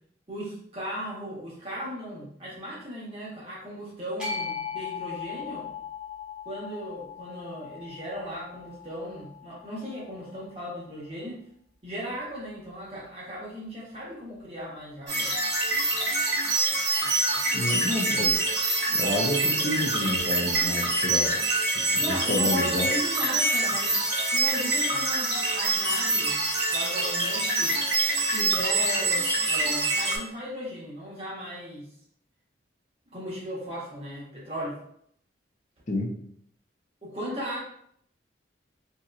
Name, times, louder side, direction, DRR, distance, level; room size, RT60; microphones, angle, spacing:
voice 1, 0.3-5.7 6.4-11.4 11.8-15.3 22.0-24.0 24.3-26.4 26.7-27.8 28.3-31.9 33.1-34.8 37.0-37.6, equal, 30° right, -6 dB, 1.0 m, -36 dB
sound 1, 4.2-10.4, left 6 dB, 5° right, 0.9 m, -38 dB
sound 2, 15.1-30.2, right 2 dB, 55° right, 1.2 m, -25 dB
voice 2, 17.5-18.3 18.9-21.3 21.6-22.9 35.9-36.1, left 1 dB, 40° left, 0 dB, 0.6 m, -29 dB
2.9 x 2.8 x 2.4 m, 0.67 s
head